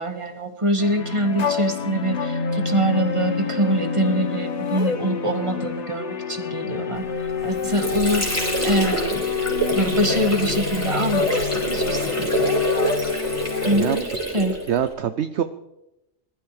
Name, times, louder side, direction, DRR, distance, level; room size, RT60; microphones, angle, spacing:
voice 1, 0.0-7.1 7.4-13.1 13.7-14.6, right 1 dB, 25° right, 7 dB, 1.7 m, -25 dB
sound 1, 0.8-13.8, left 4 dB, 60° left, 1.5 m, -31 dB
sound 2, 1.4-13.7, left 9 dB, 40° left, 0.7 m, -29 dB
Water / Sink (filling or washing), 7.2-14.9, right 2 dB, 10° left, 4.7 m, -27 dB
voice 2, 14.7-15.4, right 9 dB, 60° right, 11 dB, 0.9 m, -24 dB
20.0 x 12.5 x 5.0 m, 0.90 s
omnidirectional pair, 1.4 m